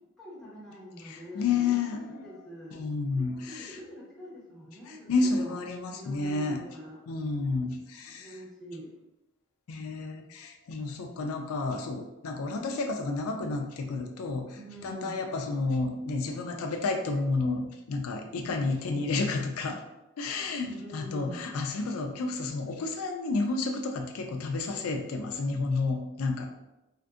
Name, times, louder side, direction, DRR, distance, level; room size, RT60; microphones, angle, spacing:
voice 1, 0.2-2.8 3.5-5.5 6.0-7.0 8.1-8.9 14.6-15.2 20.7-21.5, equal, ahead, -8 dB, 0.9 m, -45 dB
voice 2, 1.0-2.2 2.7-3.8 4.9-6.6 7.1-8.4 9.7-19.8 20.2-26.5, left 3 dB, 85° left, 4 dB, 0.4 m, -31 dB
3.6 x 2.5 x 2.4 m, 0.96 s
head